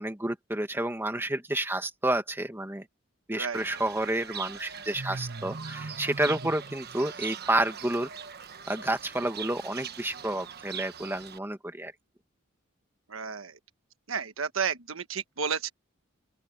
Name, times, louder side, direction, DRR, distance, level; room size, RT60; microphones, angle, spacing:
voice 1, 0.0-2.9 3.3-8.1 8.7-11.9, right 1 dB, 10° right, 1.8 m, -30 dB
Fowl / Bird, 3.5-11.4, right 6 dB, 50° right, 1.3 m, -40 dB
voice 2, 13.1-13.6 14.1-15.7, right 6 dB, 80° right, 1.3 m, -32 dB
open air
head